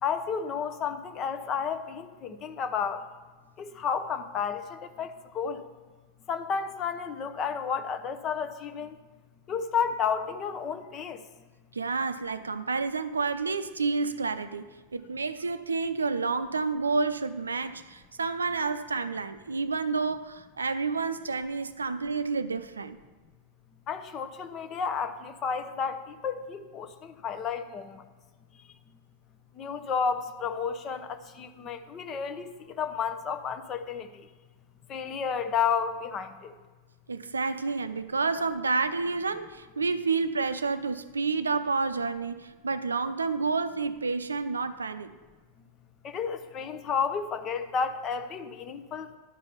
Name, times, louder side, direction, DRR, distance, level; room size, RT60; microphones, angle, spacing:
voice 1, 0.0-3.1 3.6-5.7 6.3-9.0 9.5-11.2 23.9-28.0 29.5-34.3 34.9-36.6 46.0-49.1, left 6 dB, 30° left, 10 dB, 0.8 m, -32 dB
voice 2, 11.7-23.0 37.1-45.1, right 4 dB, 75° right, 12 dB, 0.5 m, -29 dB
11.0 x 5.2 x 6.9 m, 1.3 s
figure-of-eight pair, 90°, 0 cm